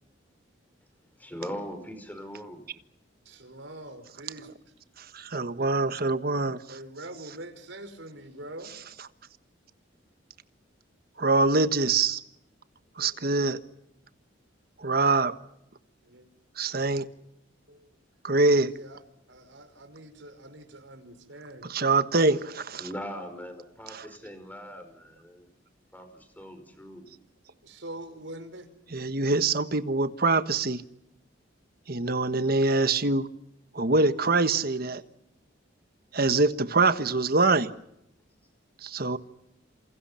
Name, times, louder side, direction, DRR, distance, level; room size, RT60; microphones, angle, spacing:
voice 1, 1.2-2.6 22.8-25.5 25.9-27.1, equal, 10° left, 8 dB, 5.3 m, -40 dB
voice 2, 3.2-4.5 6.7-8.7 13.0-13.2 16.0-16.3 17.7-17.9 18.5-19.0 19.3-21.7 27.5-28.7, right 1 dB, 75° right, 7 dB, 5.1 m, -44 dB
voice 3, 5.0-6.6 11.2-12.2 13.0-13.6 14.8-15.3 16.6-17.1 18.2-18.7 21.6-22.9 23.9-24.0 28.9-30.8 31.9-33.3 33.7-35.0 36.1-37.7 38.8-39.2, right 3 dB, 50° right, 11 dB, 1.4 m, -24 dB
28.0 x 28.0 x 5.8 m, 0.80 s
head